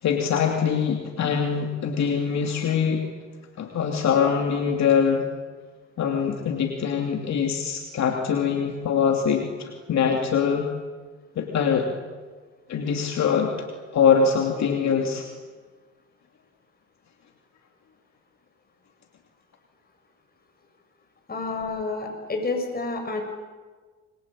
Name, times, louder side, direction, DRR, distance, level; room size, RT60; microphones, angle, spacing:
voice 1, 0.0-3.1 3.6-5.3 6.0-10.7 11.4-11.9 12.7-13.7 13.9-15.3, left 6 dB, 65° left, 2 dB, 2.9 m, -23 dB
voice 2, 21.3-23.2, left 3 dB, 30° left, 3 dB, 7.7 m, -29 dB
28.0 x 23.0 x 8.8 m, 1.4 s
cardioid pair, 90°, 30 cm